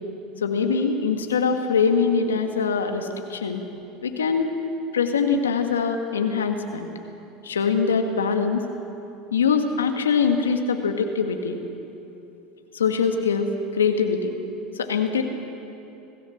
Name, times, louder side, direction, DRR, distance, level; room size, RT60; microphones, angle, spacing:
voice 1, 0.4-3.6 4.0-4.5 4.9-6.9 7.4-8.6 9.3-11.6 12.7-14.3 14.8-15.2, left 5 dB, 90° left, 5 dB, 1.7 m, -23 dB
25.0 x 15.5 x 7.2 m, 2.9 s
hypercardioid pair, 85°, 0 cm